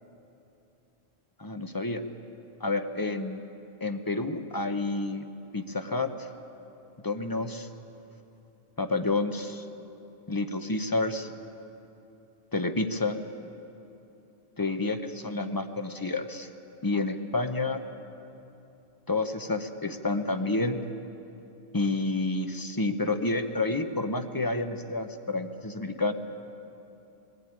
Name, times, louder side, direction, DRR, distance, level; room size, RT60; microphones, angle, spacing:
voice 1, 1.4-2.0 2.6-3.4 3.8-5.2 5.5-6.1 7.0-7.7 8.8-9.6 10.3-11.3 12.5-13.2 14.6-16.5 16.8-17.8 19.1-20.8 21.7-26.1, left 2 dB, 20° left, 8 dB, 0.7 m, -29 dB
20.5 x 15.0 x 8.9 m, 2.9 s
omnidirectional pair, 1.1 m